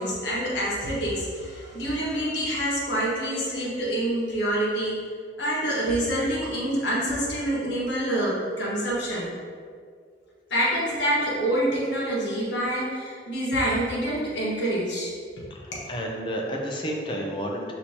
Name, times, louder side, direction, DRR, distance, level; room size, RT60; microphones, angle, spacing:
voice 1, 0.0-5.0 5.4-9.3 10.5-15.5, right 1 dB, 75° left, -5 dB, 1.2 m, -26 dB
voice 2, 15.5-17.7, equal, 25° left, -1 dB, 0.5 m, -31 dB
6.2 x 2.8 x 2.8 m, 2.1 s
head